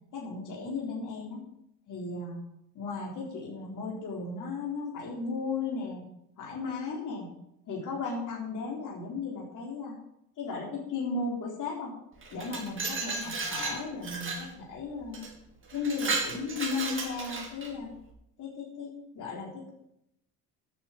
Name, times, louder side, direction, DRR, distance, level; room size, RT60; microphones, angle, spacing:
voice 1, 0.1-1.4 1.9-2.4 2.8-6.0 6.4-7.3 7.7-9.9 10.4-11.9 12.3-15.3 15.7-17.9 18.4-19.7, left 4 dB, 60° left, -2 dB, 3.8 m, -35 dB
Glass, 12.2-14.5 15.1-15.3 15.7-17.7, right 3 dB, 35° right, 3.5 m, -34 dB
10.5 x 6.8 x 8.6 m, 0.79 s
supercardioid pair, 90°, 36 cm